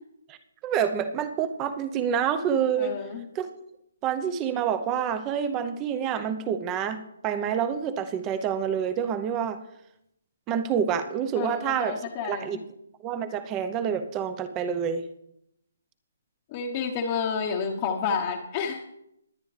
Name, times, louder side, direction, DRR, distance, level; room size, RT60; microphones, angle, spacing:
voice 1, 0.6-3.0 3.3-3.5 4.0-9.6 10.5-12.6 13.0-15.0, right 8 dB, 20° right, 11 dB, 0.8 m, -27 dB
voice 2, 2.8-3.3 11.4-12.6 16.5-18.8, left 6 dB, 30° left, 1 dB, 1.1 m, -30 dB
20.5 x 9.0 x 3.4 m, 0.80 s
hypercardioid pair, 155°, 0 cm